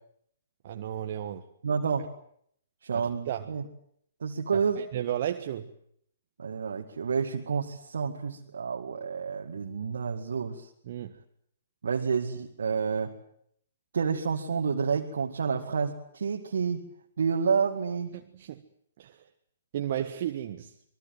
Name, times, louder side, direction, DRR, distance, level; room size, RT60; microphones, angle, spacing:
voice 1, 0.6-1.5 2.9-3.5 4.5-5.7 10.9-11.2 18.1-18.6 19.0-19.2 19.7-20.7, right 11 dB, 45° right, 6 dB, 1.6 m, -34 dB
voice 2, 1.6-2.1 2.8-3.6 4.2-4.8 6.4-10.7 11.8-13.1 13.9-16.8 17.2-18.1, right 6 dB, 65° right, 1 dB, 2.3 m, -29 dB
25.5 x 22.5 x 7.8 m, 0.68 s
figure-of-eight pair, 120°, 0 cm